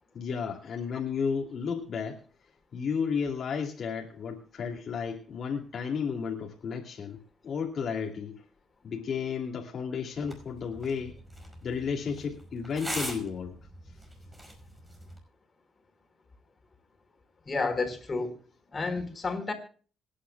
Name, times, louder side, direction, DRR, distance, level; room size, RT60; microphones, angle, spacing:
voice 1, 0.1-2.2 2.7-7.2 7.4-8.4 8.8-11.2 11.6-13.6, left 6 dB, 60° left, 0 dB, 2.5 m, -33 dB
sound 1, 10.2-15.2, right 1 dB, 15° right, 5.2 m, -42 dB
voice 2, 17.5-18.4 18.7-19.5, left 3 dB, 30° left, 4 dB, 4.1 m, -30 dB
26.5 x 9.9 x 2.3 m, 0.41 s
cardioid pair, 90°, 0 cm